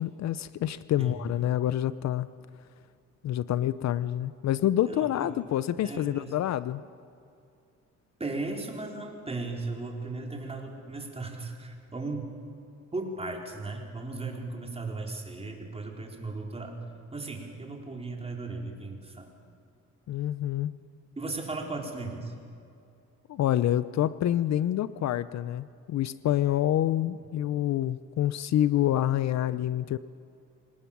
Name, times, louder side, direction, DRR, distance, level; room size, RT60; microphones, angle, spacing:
voice 1, 0.0-2.3 3.2-6.8 20.1-20.7 23.3-30.0, left 12 dB, 65° left, 16 dB, 0.6 m, -27 dB
voice 2, 4.9-5.3 5.8-6.3 8.2-12.3 12.9-16.8 17.1-19.3 21.2-22.3, right 3 dB, 20° right, 1 dB, 4.2 m, -36 dB
25.5 x 19.0 x 7.3 m, 2.5 s
cardioid pair, 90°, 30 cm